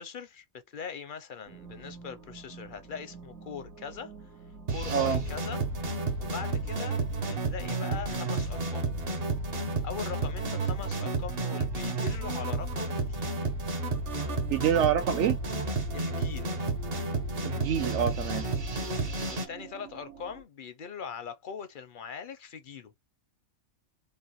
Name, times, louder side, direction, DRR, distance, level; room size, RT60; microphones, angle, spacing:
voice 1, 0.0-4.1 4.7-5.6 6.2-7.0 7.3-8.9 9.5-13.5 15.9-16.7 19.2-22.9, left 6 dB, 55° left, 0.5 m, -41 dB
sound 1, 1.5-20.4, right 3 dB, 85° right, 1.6 m, -50 dB
sound 2, 4.7-19.5, right 2 dB, 45° right, 1.1 m, -31 dB
voice 2, 4.9-5.2 14.5-15.4 17.4-18.5, right 9 dB, 65° right, 0.9 m, -26 dB
5.1 x 2.2 x 2.9 m
omnidirectional pair, 1.4 m